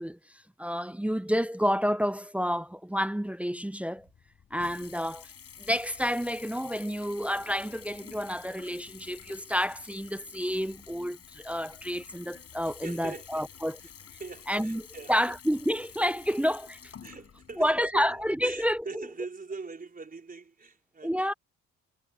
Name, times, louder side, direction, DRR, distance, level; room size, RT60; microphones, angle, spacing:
voice 1, 0.0-4.1 4.5-5.3 5.6-13.8 14.5-16.8 17.6-19.1 21.0-21.3, equal, 5° right, 0.7 m, -29 dB
Water tap faucet / Bathtub (filling or washing) / Trickle dribble, 4.0-18.8, left 8 dB, 50° left, 7.3 m, -50 dB
voice 2, 12.6-13.5 13.8-13.9 14.2-15.4 17.0-21.4, right 4 dB, 25° right, 5.0 m, -42 dB
supercardioid pair, 80°, 32 cm